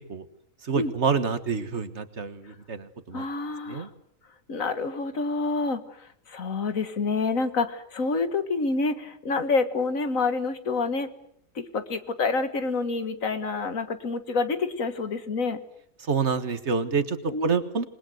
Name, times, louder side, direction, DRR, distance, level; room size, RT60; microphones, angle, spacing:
voice 1, 0.6-3.2 3.7-3.9 16.0-17.9, right 5 dB, 55° right, 12 dB, 1.7 m, -27 dB
voice 2, 3.1-3.9 4.5-11.1 11.6-15.6 17.3-17.6, left 4 dB, 80° left, 10 dB, 2.1 m, -28 dB
27.5 x 21.0 x 7.9 m, 0.69 s
omnidirectional pair, 1.4 m